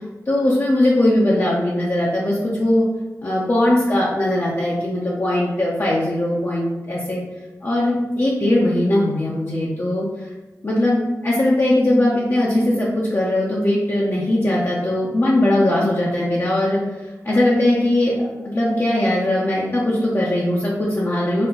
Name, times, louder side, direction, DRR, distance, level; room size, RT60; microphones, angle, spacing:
voice 1, 0.3-2.8 3.2-7.2 7.6-10.0 10.6-16.8 17.2-21.5, left 1 dB, 45° left, -6 dB, 0.8 m, -19 dB
4.3 x 2.2 x 3.8 m, 1.1 s
cardioid pair, 55°, 6 cm